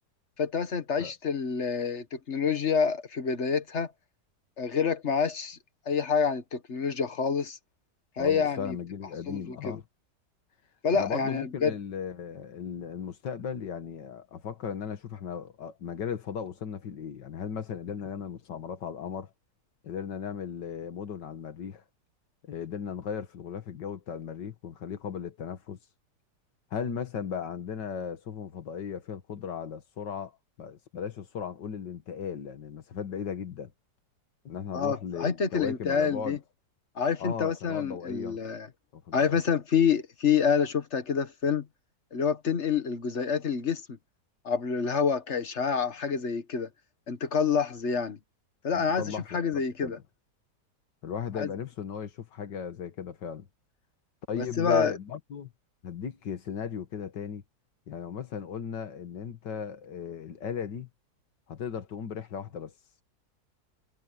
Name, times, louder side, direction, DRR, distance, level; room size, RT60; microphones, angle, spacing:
voice 1, 0.4-3.9 4.6-5.6 5.8-7.6 8.2-8.8 9.3-9.8 10.8-11.7 34.7-36.4 37.0-38.7 39.1-41.7 42.1-44.0 44.4-46.7 47.1-48.2 48.6-50.0 51.3-51.5 54.4-55.0, left 6 dB, 45° left, 1.7 m, -27 dB
voice 2, 8.2-9.8 10.9-19.3 19.8-21.8 22.5-25.8 26.7-30.3 30.6-33.7 34.4-36.4 37.2-38.4 38.9-39.4 48.7-50.0 51.0-53.5 54.3-55.5 55.8-57.4 57.9-60.9 61.5-62.7, left 7 dB, 85° left, 2.2 m, -36 dB
omnidirectional pair, 1.8 m